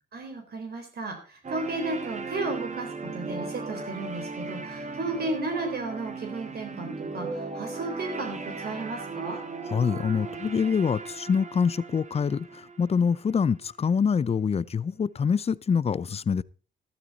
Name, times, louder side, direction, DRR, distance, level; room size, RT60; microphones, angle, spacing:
voice 1, 0.1-2.9 3.1-9.4, right 2 dB, 55° right, 3.8 m, -34 dB
sound 1, 1.4-13.5, right 4 dB, 35° right, 1.8 m, -37 dB
voice 2, 9.7-16.4, left 6 dB, 30° left, 0.6 m, -25 dB
13.0 x 12.5 x 4.1 m
cardioid pair, 90°, 20 cm